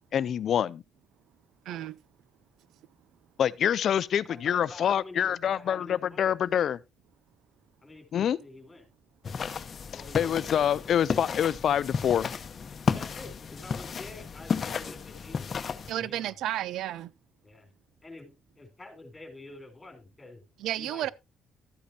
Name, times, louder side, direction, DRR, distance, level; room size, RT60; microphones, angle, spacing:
voice 1, 0.1-0.8 3.4-6.8 8.1-8.4 10.1-12.3, left 9 dB, 65° left, 0.5 m, -26 dB
voice 2, 1.7-2.0 15.9-17.1 20.6-21.1, right 12 dB, 85° right, 0.4 m, -32 dB
voice 3, 4.3-6.3 7.8-8.9 9.9-10.9 12.9-16.4 17.4-17.7 18.0-20.4 20.8-21.1, left 2 dB, 20° left, 3.6 m, -48 dB
sound 1, 9.2-15.9, left 6 dB, 45° left, 0.9 m, -33 dB
13.0 x 8.5 x 2.8 m
cardioid pair, 90°, 0 cm